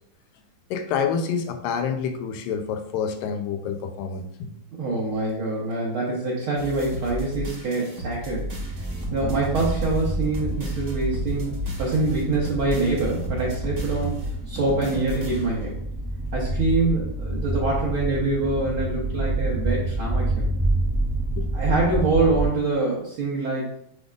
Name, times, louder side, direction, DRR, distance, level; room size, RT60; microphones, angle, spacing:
voice 1, 0.7-4.5 16.8-16.9 21.4-21.5, left 6 dB, 85° left, 6 dB, 2.3 m, -28 dB
voice 2, 4.8-8.5 9.1-11.5 11.8-15.7 16.3-20.5 21.5-23.9, right 3 dB, 75° right, -5 dB, 1.2 m, -25 dB
sound 1, 6.6-15.7, equal, 50° right, 1.3 m, -35 dB
sound 2, 8.5-22.5, right 2 dB, 30° right, 0.7 m, -28 dB
8.0 x 5.1 x 2.4 m, 0.69 s
omnidirectional pair, 4.0 m